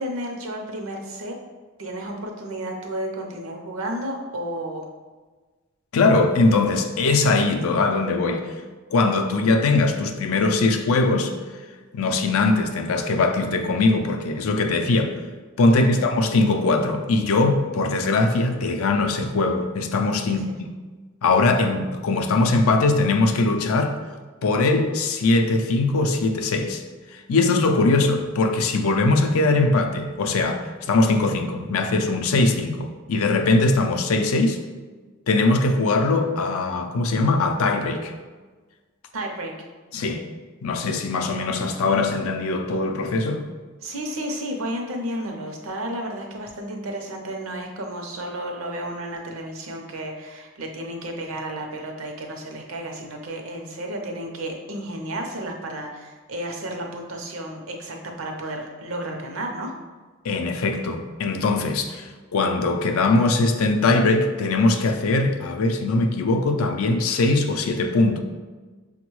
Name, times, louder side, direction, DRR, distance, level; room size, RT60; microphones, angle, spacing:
voice 1, 0.0-1.4 1.8-4.9 15.8-15.9 20.3-20.5 39.1-39.7 43.8-59.7, right 1 dB, 75° right, 2 dB, 0.6 m, -32 dB
voice 2, 5.9-8.5 8.9-11.3 11.9-15.2 15.6-20.5 21.2-24.0 24.4-26.8 27.1-34.6 35.3-38.1 39.9-40.2 40.6-43.4 60.2-68.2, left 3 dB, 80° left, 5 dB, 0.4 m, -21 dB
6.0 x 2.2 x 3.0 m, 1.3 s
head